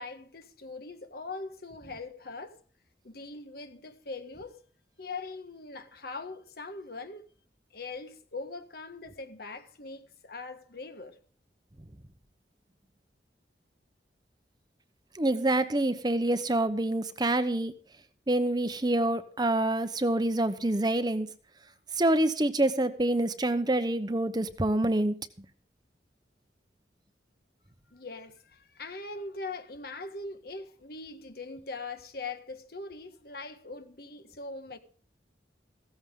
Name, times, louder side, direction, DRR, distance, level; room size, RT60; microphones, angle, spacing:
voice 1, 0.0-2.6 3.0-4.6 5.0-7.2 7.7-11.2 27.9-34.8, left 3 dB, 60° left, 1.4 m, -41 dB
voice 2, 15.1-17.7 18.3-21.3 22.0-25.1, right 1 dB, 25° right, 0.8 m, -26 dB
16.0 x 14.0 x 3.7 m
head